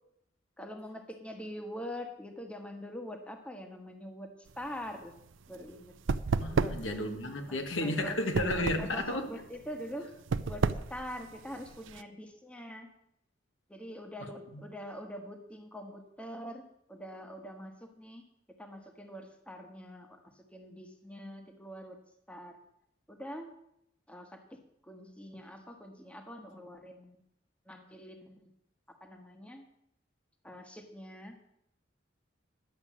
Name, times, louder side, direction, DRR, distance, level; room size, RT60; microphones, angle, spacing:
voice 1, 0.6-5.2 5.5-5.9 6.6-6.8 7.5-8.2 8.8-10.1 10.5-12.9 13.7-16.6 16.9-18.2 18.6-22.0 22.3-22.5 23.1-23.5 24.1-27.2 27.7-28.5 29.0-29.6 30.4-31.4, equal, 5° left, 4 dB, 1.2 m, -44 dB
sound 1, 4.5-12.0, right 4 dB, 80° right, 0.5 m, -33 dB
voice 2, 6.4-9.3 14.5-14.6, left 1 dB, 85° left, 5 dB, 1.5 m, -32 dB
11.0 x 7.2 x 7.3 m, 0.76 s
head